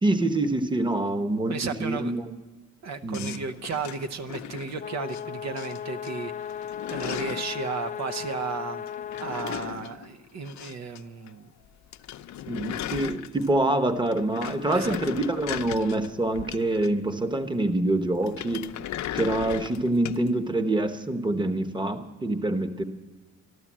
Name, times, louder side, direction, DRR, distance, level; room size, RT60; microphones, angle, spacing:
voice 1, 0.0-2.2 3.0-3.4 12.5-18.7 19.1-22.8, right 2 dB, 15° right, 10 dB, 1.0 m, -26 dB
voice 2, 1.5-2.1 2.8-6.5 6.9-8.9 9.2-11.5 14.7-15.0, right 5 dB, 60° right, 10 dB, 0.8 m, -34 dB
sound 1, 3.1-5.2 5.6-6.1 6.4-7.6 8.9-11.0 11.3-11.4 11.7-11.8 11.9-13.7 14.1-17.2 18.2-20.3, left 11 dB, 65° left, 0.6 m, -37 dB
sound 2, 4.8-9.6, left 9 dB, 25° left, 0.3 m, -36 dB
12.5 x 12.5 x 7.4 m, 1.2 s
cardioid pair, 90°, 30 cm